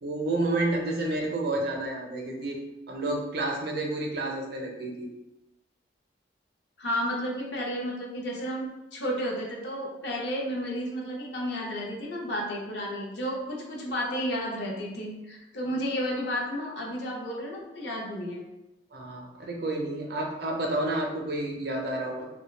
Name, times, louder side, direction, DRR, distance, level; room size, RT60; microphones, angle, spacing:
voice 1, 0.0-2.6 2.9-5.1 18.9-22.3, right 2 dB, 55° right, 1 dB, 0.5 m, -30 dB
voice 2, 6.8-18.4, equal, 60° left, -2 dB, 0.6 m, -32 dB
2.3 x 2.1 x 3.1 m, 0.98 s
head